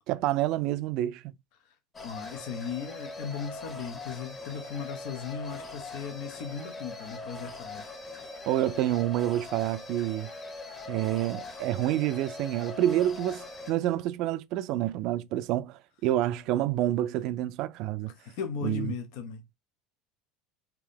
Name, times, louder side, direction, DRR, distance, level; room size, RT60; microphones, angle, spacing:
voice 1, 0.1-1.3 8.5-10.3 10.9-18.1 18.6-18.9, right 13 dB, 60° right, 0.4 m, -28 dB
sound 1, 1.9-13.7, left 3 dB, 30° left, 1.4 m, -42 dB
voice 2, 2.0-7.9 8.1-8.2 18.1-19.4, left 6 dB, 65° left, 0.7 m, -37 dB
3.6 x 2.8 x 3.4 m
hypercardioid pair, 85°, 0 cm